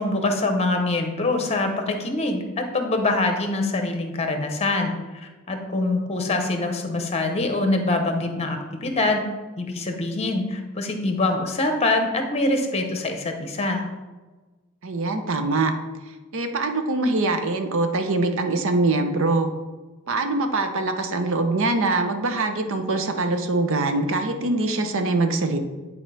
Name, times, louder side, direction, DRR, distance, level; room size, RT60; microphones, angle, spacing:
voice 1, 0.0-4.9 5.5-9.2 9.6-13.8, left 2 dB, 30° left, 5 dB, 0.9 m, -24 dB
voice 2, 14.8-15.7 16.3-19.5 20.1-25.6, right 2 dB, 65° right, 6 dB, 0.7 m, -23 dB
10.0 x 4.3 x 3.4 m, 1.3 s
head